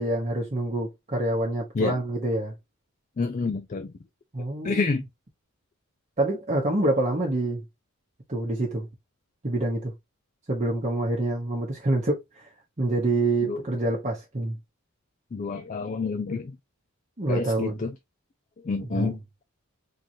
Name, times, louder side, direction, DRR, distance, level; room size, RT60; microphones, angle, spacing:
voice 1, 0.0-2.5 4.3-5.0 6.2-7.6 8.3-8.9 9.4-9.9 10.5-12.4 12.8-14.6 17.2-17.8 18.8-19.1, right 2 dB, 35° right, 0.9 m, -26 dB
voice 2, 3.2-3.9 4.6-5.0 13.4-13.6 15.3-16.6 17.3-17.9 18.6-19.2, left 4 dB, 35° left, 0.3 m, -28 dB
3.7 x 2.9 x 2.6 m
head